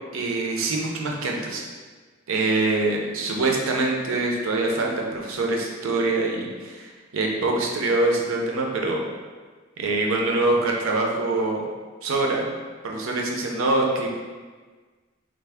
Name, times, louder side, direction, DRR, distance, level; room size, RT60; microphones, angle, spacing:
voice 1, 0.1-1.6 2.3-9.0 9.8-11.7 12.0-12.5 12.8-14.1, right 2 dB, 75° right, 0 dB, 0.5 m, -24 dB
3.4 x 2.0 x 3.3 m, 1.4 s
head